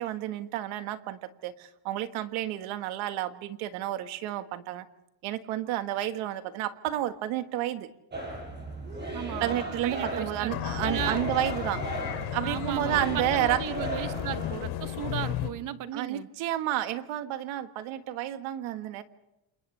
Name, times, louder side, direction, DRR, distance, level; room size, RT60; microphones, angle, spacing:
voice 1, 0.0-4.9 5.2-7.9 9.4-11.8 12.3-13.6 15.9-19.0, right 13 dB, 85° right, 1.7 m, -31 dB
sound 1, 8.1-14.6, right 2 dB, 20° right, 5.4 m, -37 dB
voice 2, 9.1-10.5 10.8-11.3 12.4-16.3, right 11 dB, 40° right, 0.9 m, -35 dB
sound 2, 10.5-15.5, left 11 dB, 85° left, 2.8 m, -34 dB
29.0 x 28.0 x 3.3 m
cardioid pair, 180°, 47 cm